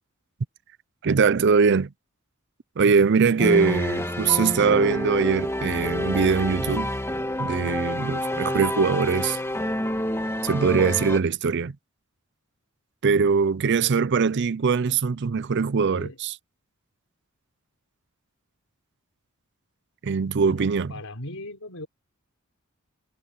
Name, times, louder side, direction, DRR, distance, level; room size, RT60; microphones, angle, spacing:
voice 1, 1.0-1.9 2.8-6.9 7.4-9.4 10.4-11.8 13.0-16.3 20.0-20.9, right 5 dB, 55° right, 0.5 m, -22 dB
sound 1, 3.4-11.2, left 1 dB, 10° left, 2.6 m, -28 dB
voice 2, 4.2-4.6 15.8-16.2 20.4-21.9, left 1 dB, 80° left, 5.1 m, -39 dB
head